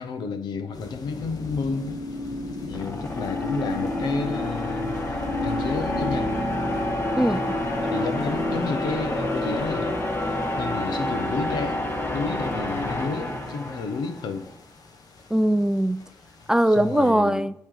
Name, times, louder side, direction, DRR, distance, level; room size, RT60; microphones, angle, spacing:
voice 1, 0.0-2.0 2.7-6.4 7.8-11.8 12.1-14.5 16.7-17.5, left 4 dB, 75° left, 0.9 m, -31 dB
sound 1, 0.7-17.1, left 4 dB, 60° left, 1.2 m, -46 dB
sound 2, 1.1-14.3, left 1 dB, 30° left, 1.5 m, -28 dB
voice 2, 7.2-7.6 15.3-16.0 16.5-17.5, right 1 dB, 10° right, 0.4 m, -21 dB
8.6 x 3.2 x 6.4 m
supercardioid pair, 55°, 7 cm